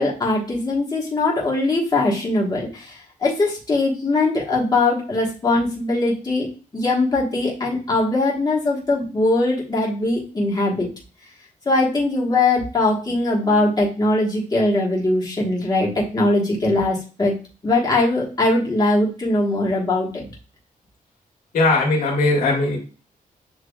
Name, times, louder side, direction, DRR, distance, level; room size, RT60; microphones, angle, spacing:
voice 1, 0.0-10.9 11.6-17.3 17.6-20.2, left 2 dB, 25° left, -3 dB, 1.4 m, -21 dB
voice 2, 21.5-22.8, left 2 dB, 85° left, -2 dB, 1.7 m, -19 dB
7.1 x 2.8 x 2.3 m, 0.35 s
wide cardioid pair, 120°, 15 cm